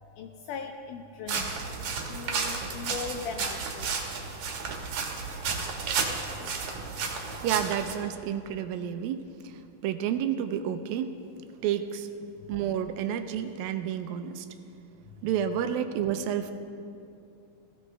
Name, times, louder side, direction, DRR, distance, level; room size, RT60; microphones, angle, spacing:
voice 1, 0.0-1.6 2.1-4.0 6.1-6.6 7.0-7.1, left 5 dB, 80° left, 4 dB, 1.9 m, -39 dB
sound 1, 1.3-7.9, right 5 dB, 60° right, 2.4 m, -32 dB
voice 2, 7.4-11.1 11.6-12.1 12.5-14.5 15.2-16.5, right 9 dB, 80° right, 8 dB, 2.4 m, -30 dB
19.5 x 15.0 x 3.3 m, 2.6 s
omnidirectional pair, 4.2 m